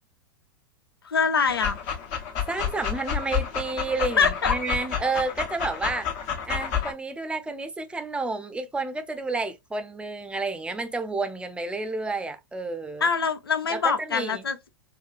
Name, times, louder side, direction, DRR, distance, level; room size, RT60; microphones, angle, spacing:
voice 1, 1.0-1.8 4.2-4.6 13.0-14.7, left 5 dB, 80° left, 0.4 m, -24 dB
Dog, 1.5-6.9, left 8 dB, 50° left, 1.0 m, -30 dB
voice 2, 2.5-6.1 6.5-13.1 13.7-14.4, right 3 dB, 10° right, 0.6 m, -30 dB
2.8 x 2.3 x 2.4 m
figure-of-eight pair, 95°, 12 cm